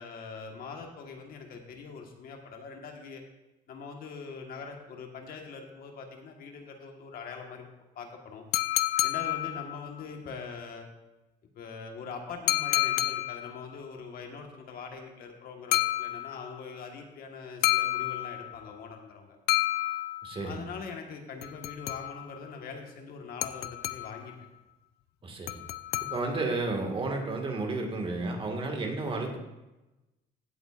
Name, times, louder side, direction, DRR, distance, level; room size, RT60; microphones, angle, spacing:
voice 1, 0.0-3.2 3.7-7.7 7.9-8.4 9.0-10.9 11.5-19.4 20.4-24.3, left 5 dB, 60° left, 3 dB, 1.5 m, -42 dB
sound 1, 8.5-10.0 12.5-13.6 15.7-16.6 17.6-18.7 19.5-20.5 21.4-22.4 23.4-24.3 25.5-26.6, left 15 dB, 75° left, 0.4 m, -30 dB
voice 2, 20.2-20.6 25.2-25.6 26.1-29.4, right 3 dB, 30° right, 3 dB, 1.9 m, -32 dB
16.0 x 7.8 x 2.5 m, 1.0 s
cardioid pair, 110°, 17 cm